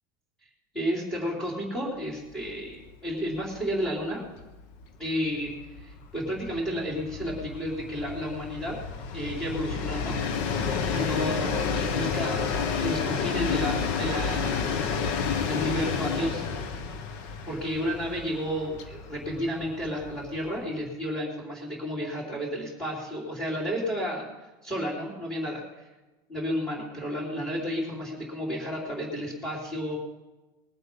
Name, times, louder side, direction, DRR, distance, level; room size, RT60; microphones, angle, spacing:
voice 1, 0.7-4.2 5.0-5.5 5.8-8.7 9.1-10.2 10.9-14.8 15.5-16.4 16.7-16.8 17.5-24.3 24.6-25.9 26.3-30.0, equal, 5° left, -9 dB, 3.6 m, -32 dB
Train, 2.4-2.6 2.9-3.0 3.3-20.7, left 5 dB, 55° left, 1.1 m, -31 dB
21.5 x 7.9 x 5.4 m, 1.1 s
cardioid pair, 180°, 11 cm